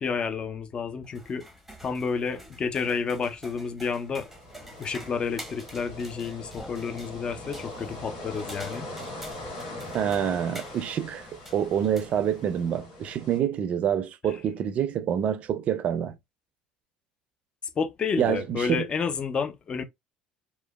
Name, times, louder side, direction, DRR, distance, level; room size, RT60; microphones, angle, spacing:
voice 1, 0.0-1.4 1.8-4.3 4.8-8.9 14.3-14.4 17.8-19.8, left 5 dB, 35° left, 0.5 m, -30 dB
sound 1, 1.0-12.7, right 1 dB, 5° right, 0.8 m, -47 dB
sound 2, 4.0-13.4, left 1 dB, 85° left, 1.4 m, -41 dB
voice 2, 9.9-11.3 11.5-16.1 18.2-18.9, right 9 dB, 50° right, 0.4 m, -27 dB
2.9 x 2.1 x 2.2 m
supercardioid pair, 90°, 3 cm